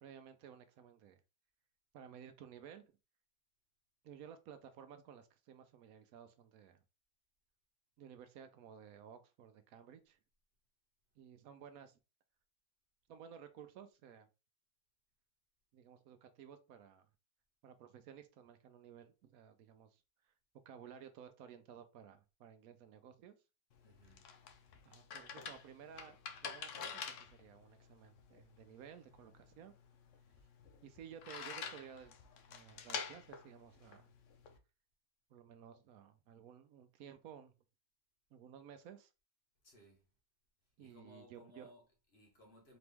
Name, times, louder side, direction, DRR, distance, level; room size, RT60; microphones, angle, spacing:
voice 1, 0.0-1.2 1.9-2.8 4.0-6.8 8.0-10.2 11.2-12.0 13.1-14.3 15.7-17.1 17.6-20.3 20.7-23.3 24.9-29.7 30.8-32.1 32.5-34.1 35.3-37.5 38.3-39.1 40.8-41.7, right 8 dB, 75° right, 1.0 m, -55 dB
sound 1, 23.7-34.6, left 6 dB, 65° left, 0.9 m, -48 dB
voice 2, 23.8-24.3 39.6-40.1 40.8-42.8, equal, 45° left, 1.5 m, -62 dB
4.2 x 3.0 x 3.4 m
omnidirectional pair, 1.6 m